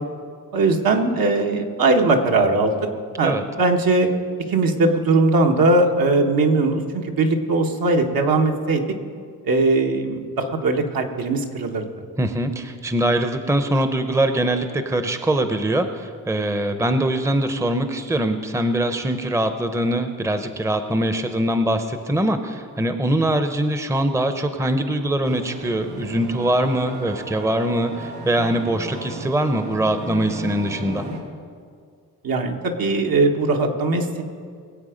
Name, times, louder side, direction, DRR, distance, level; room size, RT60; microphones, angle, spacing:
voice 1, 0.5-2.9 3.2-4.1 4.5-8.8 9.4-11.9 32.2-34.2, right 3 dB, 65° right, 3 dB, 1.6 m, -20 dB
voice 2, 12.2-31.0, right 1 dB, 10° right, 8 dB, 0.8 m, -22 dB
sound 1, 25.2-31.2, right 1 dB, 85° right, 2.5 m, -35 dB
22.0 x 8.0 x 5.1 m, 2.1 s
cardioid pair, 100°, 37 cm